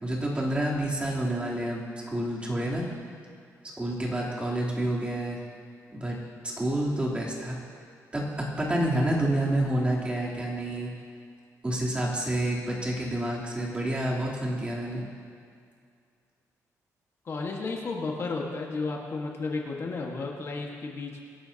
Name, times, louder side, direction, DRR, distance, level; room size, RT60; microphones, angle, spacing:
voice 1, 0.0-2.8 3.8-5.4 5.9-6.2 6.6-7.6 8.1-10.9 11.6-15.0, right 1 dB, 20° right, -5 dB, 3.3 m, -28 dB
voice 2, 17.2-21.2, left 3 dB, 50° left, 0 dB, 1.6 m, -33 dB
25.5 x 11.5 x 2.9 m, 2.3 s
cardioid pair, 110°, 6 cm